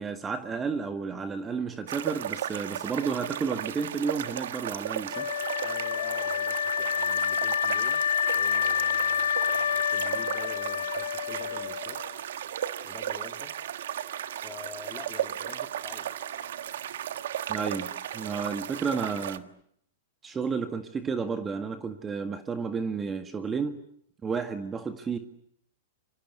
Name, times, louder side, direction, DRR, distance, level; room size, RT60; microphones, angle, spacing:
voice 1, 0.0-5.3 17.5-19.5 20.2-23.8 24.2-25.2, right 5 dB, 20° right, 1.8 m, -32 dB
sound 1, 1.9-19.4, right 10 dB, 70° right, 1.5 m, -35 dB
Wind instrument woodwind instrument, 5.1-12.1, left 9 dB, 75° left, 1.1 m, -28 dB
voice 2, 5.6-8.0 8.3-12.0 12.8-13.6 14.4-16.1, left 5 dB, 15° left, 3.4 m, -47 dB
27.5 x 25.0 x 8.1 m
hypercardioid pair, 115°, 0 cm